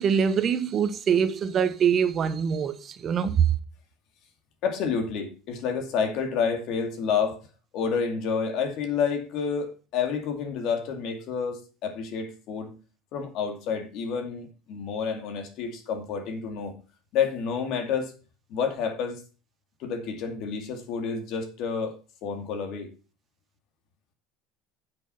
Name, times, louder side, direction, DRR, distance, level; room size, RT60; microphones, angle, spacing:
voice 1, 0.0-3.6, right 7 dB, 40° right, 1.1 m, -24 dB
voice 2, 4.6-7.4 7.7-12.8 13.1-16.7 17.1-18.1 18.5-19.2 19.8-22.9, left 6 dB, 65° left, 2.5 m, -29 dB
9.5 x 6.2 x 5.6 m
supercardioid pair, 105°, 0 cm